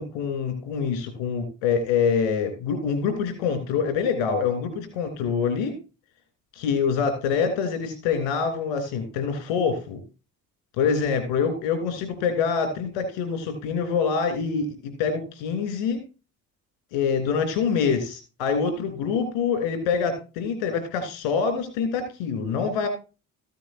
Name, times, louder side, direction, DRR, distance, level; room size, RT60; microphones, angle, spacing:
voice 1, 0.0-5.7 6.5-10.0 10.8-16.0 16.9-22.9, left 6 dB, 80° left, 8 dB, 3.1 m, -25 dB
14.0 x 9.2 x 2.6 m, 0.31 s
hypercardioid pair, 45°, 46 cm